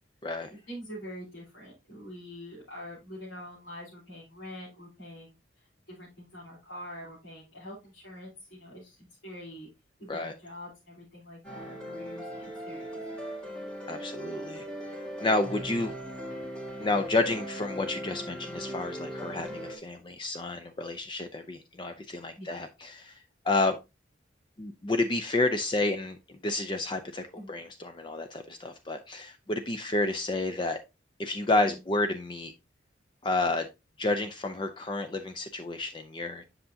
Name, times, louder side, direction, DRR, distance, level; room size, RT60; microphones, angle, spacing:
voice 1, 0.5-9.7 10.0-13.1 18.1-18.2 22.4-22.5 27.4-27.6 31.7-31.8, equal, 90° left, -8 dB, 3.6 m, -45 dB
sound 1, 11.4-19.8, equal, 5° left, 1.7 m, -39 dB
voice 2, 13.9-15.9 16.8-23.2 23.4-23.8 24.6-26.2 26.4-30.8 31.2-32.5 33.2-33.6 34.0-36.4, left 2 dB, 25° left, 7 dB, 0.5 m, -30 dB
7.8 x 5.6 x 2.7 m, 0.25 s
head